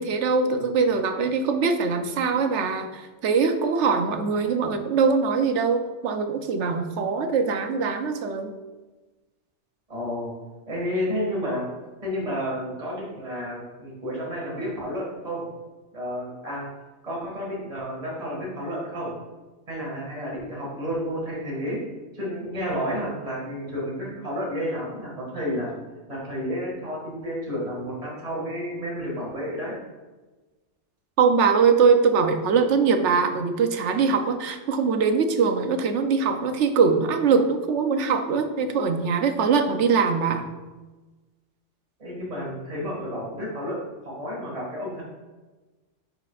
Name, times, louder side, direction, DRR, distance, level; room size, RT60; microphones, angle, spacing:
voice 1, 0.0-8.5 31.2-40.4, right 5 dB, 75° right, 7 dB, 1.0 m, -22 dB
voice 2, 9.9-10.3 10.7-11.6 12.0-15.5 15.9-16.7 17.0-19.1 19.7-21.8 22.1-25.7 26.1-29.8 42.0-45.0, equal, 30° right, -5 dB, 2.0 m, -31 dB
10.0 x 5.0 x 2.4 m, 1.2 s
omnidirectional pair, 1.2 m